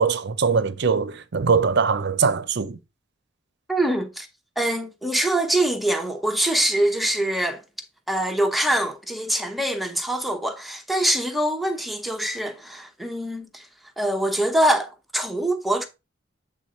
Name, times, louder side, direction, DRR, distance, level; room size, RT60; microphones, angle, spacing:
voice 1, 0.0-2.8, right 5 dB, 60° right, 0.6 m, -22 dB
voice 2, 3.7-4.3 4.6-7.6 8.1-13.7 14.0-15.9, right 1 dB, ahead, 0.9 m, -24 dB
8.0 x 3.8 x 4.1 m
head